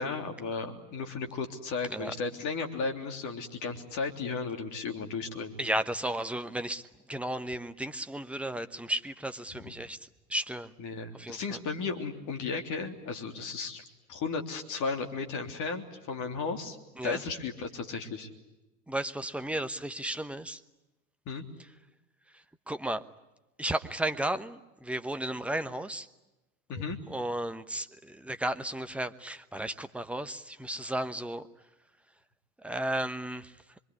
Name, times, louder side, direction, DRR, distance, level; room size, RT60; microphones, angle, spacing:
voice 1, 0.0-5.6 10.8-13.8 14.1-16.8 17.0-18.3 21.3-21.4 26.7-27.0, left 4 dB, 40° left, 3 dB, 3.5 m, -34 dB
voice 2, 5.6-6.8 7.1-10.7 11.1-11.6 17.0-17.2 18.9-20.6 22.3-23.0 23.6-26.1 26.7-31.4 32.6-33.6, right 1 dB, 5° right, 10 dB, 1.1 m, -34 dB
26.0 x 23.5 x 9.8 m, 1.0 s
figure-of-eight pair, 90°, 46 cm